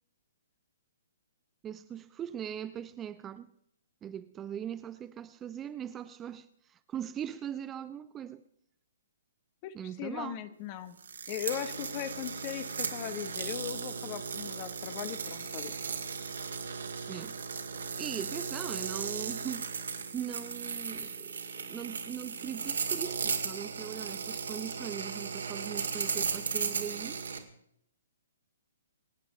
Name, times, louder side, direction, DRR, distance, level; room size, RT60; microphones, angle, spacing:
voice 1, 1.6-3.5 4.0-8.4 9.7-10.4 17.1-17.4 18.0-19.7 20.1-27.2, right 9 dB, 15° right, 0.5 m, -40 dB
voice 2, 9.6-11.0 11.3-15.7, left 11 dB, 35° left, 1.2 m, -39 dB
sound 1, 11.0-27.4, right 5 dB, 65° right, 2.1 m, -36 dB
25.5 x 9.2 x 5.0 m
figure-of-eight pair, 125°, 0 cm